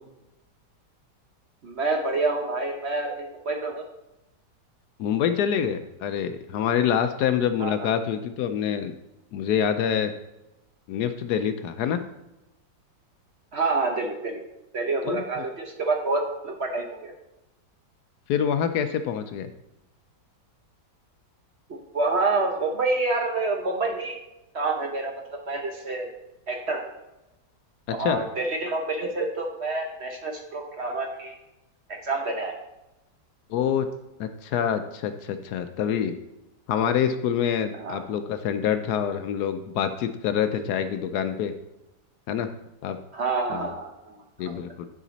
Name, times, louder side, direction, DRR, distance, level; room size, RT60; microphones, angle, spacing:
voice 1, 1.6-3.8 7.6-7.9 13.5-14.4 14.7-17.1 21.7-24.2 24.5-26.1 26.5-26.9 28.0-31.4 32.0-32.6 37.8-38.0 43.1-44.6, right 3 dB, 45° right, 2 dB, 1.1 m, -28 dB
voice 2, 5.0-8.9 9.3-10.1 10.9-12.0 15.0-15.4 18.3-19.5 28.0-28.2 33.5-33.9 34.2-36.1 36.7-41.5 42.3-42.5 42.8-43.0 43.5-43.7 44.4-44.9, left 8 dB, 75° left, 9 dB, 1.1 m, -26 dB
10.0 x 5.0 x 4.1 m, 0.94 s
omnidirectional pair, 1.8 m